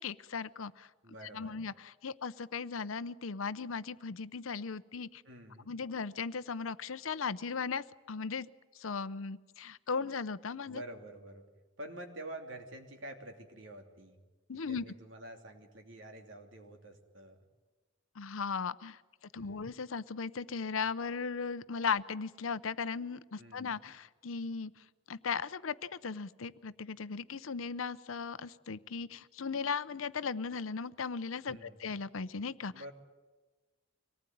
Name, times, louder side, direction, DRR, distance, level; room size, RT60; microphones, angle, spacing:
voice 1, 0.0-0.9 1.3-5.2 5.7-8.5 8.7-10.8 14.5-14.8 18.2-19.0 19.3-24.7 25.1-32.7, left 5 dB, 80° left, 16 dB, 0.7 m, -37 dB
voice 2, 1.0-1.6 5.2-5.7 10.6-11.4 11.8-14.2 14.7-17.4 19.3-19.7 23.4-23.8 31.5-31.9 32.7-32.9, right 1 dB, 65° right, 4 dB, 3.0 m, -48 dB
25.0 x 19.0 x 9.3 m, 1.2 s
head